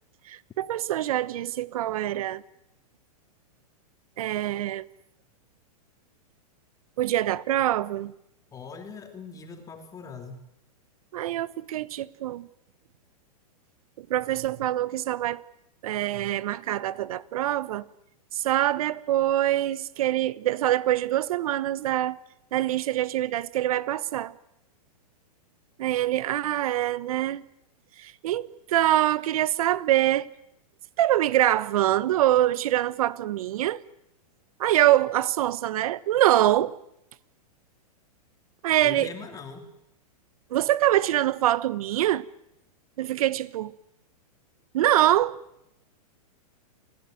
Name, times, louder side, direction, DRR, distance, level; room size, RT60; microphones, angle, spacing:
voice 1, 0.3-2.4 4.2-4.9 7.0-8.1 11.1-12.5 14.0-15.4 15.8-17.8 18.3-22.2 22.5-24.3 25.8-27.4 28.0-30.3 31.0-33.8 34.6-36.7 38.6-39.1 40.5-42.2 43.0-43.7 44.7-45.4, right 13 dB, 65° right, 1.1 m, -24 dB
voice 2, 8.5-10.4 38.8-39.7, left 5 dB, 15° left, 3.3 m, -41 dB
28.0 x 16.0 x 9.2 m
hypercardioid pair, 140°, 20 cm